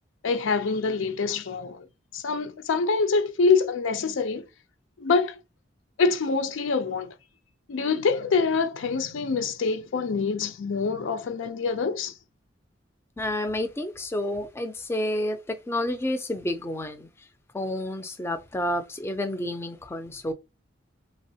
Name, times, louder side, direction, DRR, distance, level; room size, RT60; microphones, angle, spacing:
voice 1, 0.2-1.9 2.1-4.5 5.0-5.4 6.0-7.1 7.7-12.1, left 4 dB, 85° left, 0.5 m, -25 dB
voice 2, 13.2-17.1 17.5-20.3, left 1 dB, 15° left, 0.3 m, -30 dB
3.3 x 2.0 x 2.6 m
head